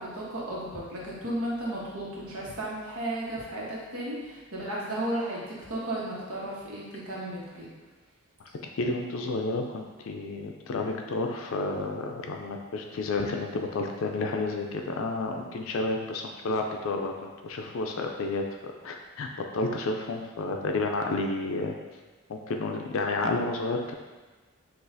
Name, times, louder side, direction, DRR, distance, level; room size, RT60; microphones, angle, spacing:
voice 1, 0.0-5.4 5.7-7.6, right 1 dB, 80° right, -5 dB, 1.1 m, -34 dB
voice 2, 8.8-18.4 18.8-21.7 22.3-23.9, left 3 dB, 65° left, 2 dB, 0.4 m, -31 dB
6.1 x 2.5 x 2.6 m, 1.3 s
head